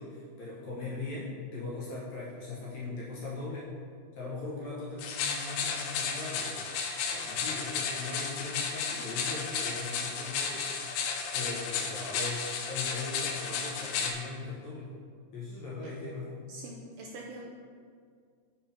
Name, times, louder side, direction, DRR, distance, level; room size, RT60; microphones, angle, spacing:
voice 1, 0.0-3.7 4.1-6.6 7.1-10.7 11.3-14.9 15.3-16.4, left 3 dB, 70° left, -6 dB, 1.8 m, -39 dB
sound 1, 5.0-14.1, left 6 dB, 90° left, 2.4 m, -33 dB
voice 2, 16.5-17.6, right 2 dB, 80° right, -1 dB, 1.8 m, -44 dB
5.3 x 4.4 x 5.7 m, 2.1 s
omnidirectional pair, 4.0 m